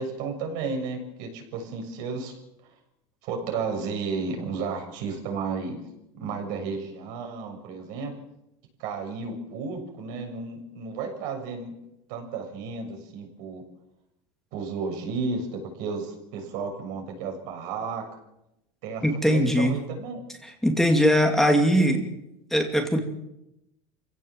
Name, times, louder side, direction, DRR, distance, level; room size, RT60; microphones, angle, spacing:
voice 1, 0.0-2.3 3.2-5.8 6.1-8.1 8.8-11.7 12.1-13.6 14.5-18.0 18.8-20.2, right 4 dB, 60° right, 3 dB, 6.8 m, -33 dB
voice 2, 19.0-19.8 20.4-22.1 22.5-23.0, equal, ahead, 2 dB, 2.5 m, -21 dB
27.5 x 16.5 x 7.5 m, 0.89 s
supercardioid pair, 145°, 15 cm